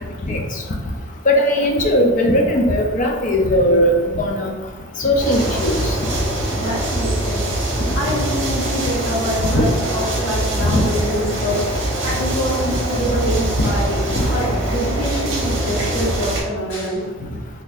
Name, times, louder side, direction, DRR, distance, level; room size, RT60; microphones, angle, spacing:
voice 1, 1.3-4.5 5.0-5.9 9.5-9.7 10.6-10.8 14.2-14.3, equal, 40° left, 2 dB, 0.4 m, -18 dB
sound 1, 5.2-16.4, right 1 dB, 60° right, 0.8 m, -23 dB
voice 2, 6.5-7.5 7.9-17.0, equal, 75° left, -10 dB, 1.3 m, -25 dB
3.9 x 2.6 x 2.5 m, 1.3 s
head